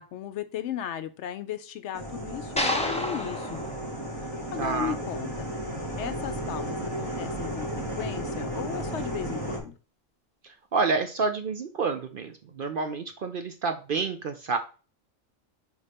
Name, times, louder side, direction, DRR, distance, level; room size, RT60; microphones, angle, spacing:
voice 1, 0.0-3.6 4.2-5.5 6.0-9.8, left 9 dB, 70° left, 12 dB, 0.8 m, -36 dB
sound 1, 1.9-9.6, right 1 dB, 80° right, 2.7 m, -34 dB
sound 2, 2.6-4.9, left 1 dB, 5° left, 0.8 m, -31 dB
voice 2, 4.6-5.0 10.4-14.6, right 4 dB, 55° right, 7 dB, 0.6 m, -29 dB
4.8 x 4.2 x 5.1 m, 0.35 s
omnidirectional pair, 1.3 m